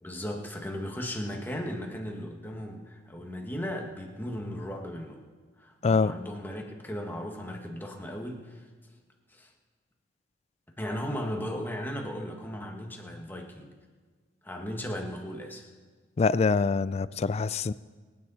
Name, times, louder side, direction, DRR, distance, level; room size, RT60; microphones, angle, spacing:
voice 1, 0.0-5.2 5.6-8.7 9.3-9.5 10.8-13.7 14.4-15.7, equal, 10° left, 1 dB, 1.5 m, -36 dB
voice 2, 5.8-6.1 16.2-17.7, left 4 dB, 35° left, 17 dB, 0.3 m, -25 dB
24.0 x 9.6 x 4.1 m, 1.5 s
head